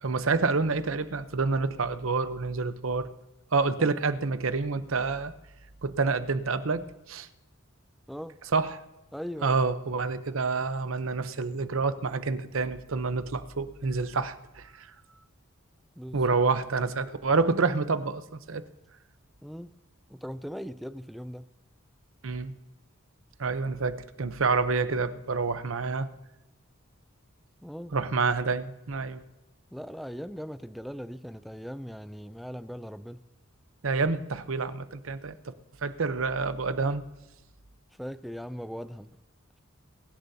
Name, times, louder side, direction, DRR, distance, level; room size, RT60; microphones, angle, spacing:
voice 1, 0.0-3.1 3.5-5.3 5.8-7.3 8.5-8.8 9.4-14.9 16.1-18.6 22.2-22.5 23.4-26.1 27.9-29.2 33.8-35.5 35.8-37.0, right 4 dB, 70° right, 0.8 m, -28 dB
voice 2, 9.1-9.6 16.0-16.4 19.4-19.8 20.1-21.5 27.6-28.0 29.7-33.2 38.0-39.2, equal, ahead, 0.4 m, -39 dB
23.0 x 11.5 x 2.8 m
head